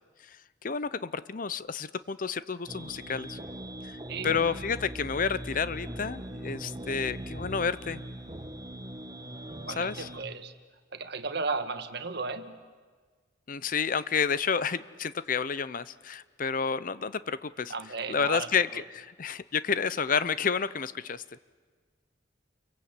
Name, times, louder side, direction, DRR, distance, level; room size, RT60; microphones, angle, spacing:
voice 1, 0.6-3.4 3.8-3.9 4.2-8.0 9.8-10.1 13.5-17.7 18.1-21.2, left 6 dB, 45° left, 16 dB, 0.7 m, -30 dB
sound 1, 2.7-10.3, right 1 dB, 20° right, 1.3 m, -40 dB
voice 2, 9.7-10.5 10.9-12.5 17.7-18.5, right 4 dB, 60° right, 9 dB, 1.6 m, -34 dB
29.5 x 23.0 x 8.2 m, 1.5 s
head